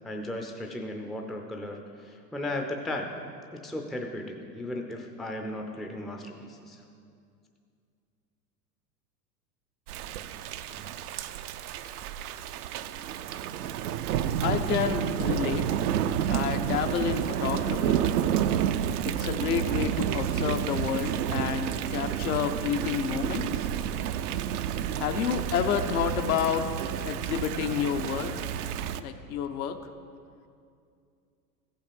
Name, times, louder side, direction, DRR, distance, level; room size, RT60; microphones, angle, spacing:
voice 1, 0.0-3.1 3.5-6.8, left 1 dB, ahead, 3 dB, 0.5 m, -36 dB
Thunder / Rain, 9.9-29.0, right 10 dB, 65° right, 0.6 m, -30 dB
voice 2, 14.4-15.7 16.3-18.0 19.0-23.7 25.0-26.7 27.1-28.4 28.9-29.8, left 8 dB, 60° left, 7 dB, 0.9 m, -29 dB
14.5 x 5.8 x 5.2 m, 2.4 s
hypercardioid pair, 90°, 50 cm